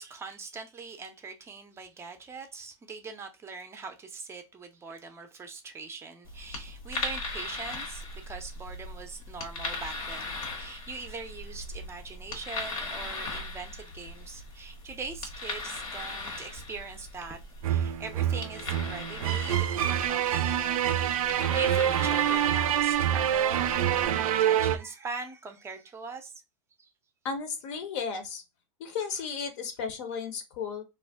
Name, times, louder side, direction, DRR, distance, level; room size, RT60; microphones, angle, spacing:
voice 1, 0.0-17.4 17.7-21.0 21.3-26.3 26.8-26.9, right 4 dB, 15° right, 0.5 m, -42 dB
sound 1, 6.2-24.1, left 3 dB, 85° left, 1.2 m, -39 dB
sound 2, 17.6-24.8, right 10 dB, 85° right, 0.4 m, -26 dB
voice 2, 27.2-28.4 28.8-30.8, left 6 dB, 55° left, 0.7 m, -34 dB
2.5 x 2.0 x 3.4 m
hypercardioid pair, 135°, 18 cm